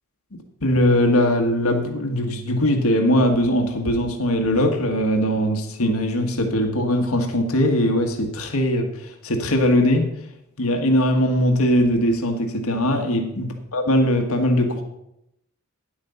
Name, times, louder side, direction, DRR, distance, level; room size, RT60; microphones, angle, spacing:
voice 1, 0.6-10.1 10.6-14.8, left 1 dB, 75° left, 4 dB, 1.5 m, -20 dB
10.0 x 8.6 x 5.6 m, 0.81 s
head